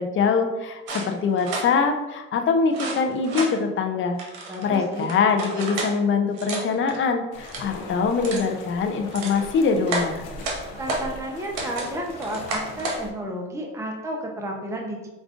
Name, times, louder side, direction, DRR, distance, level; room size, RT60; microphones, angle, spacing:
voice 1, 0.0-4.2 4.6-10.2, left 5 dB, 40° left, 6 dB, 0.5 m, -23 dB
sound 1, 0.9-1.7 2.7-3.5 4.2-5.9 6.3-7.0 7.4-7.7 8.2-8.5 8.9-9.4 9.9-11.1 11.6-11.9 12.2-13.0, right 2 dB, 80° right, 0.9 m, -31 dB
voice 2, 4.5-5.1 10.8-15.1, right 1 dB, 10° right, 0 dB, 0.7 m, -32 dB
sound 2, 7.3-13.1, left 2 dB, 80° left, 0.7 m, -40 dB
5.0 x 2.3 x 2.4 m, 1.1 s
supercardioid pair, 75°, 30 cm